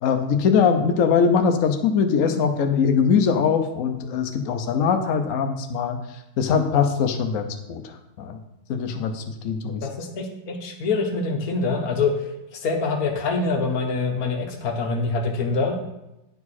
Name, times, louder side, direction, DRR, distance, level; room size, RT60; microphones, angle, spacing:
voice 1, 0.0-6.0 6.4-8.4 8.7-9.8, left 6 dB, 90° left, 5 dB, 0.7 m, -22 dB
voice 2, 9.8-12.3 12.6-15.8, left 4 dB, 55° left, 3 dB, 1.2 m, -25 dB
9.6 x 4.7 x 4.1 m, 0.90 s
omnidirectional pair, 2.3 m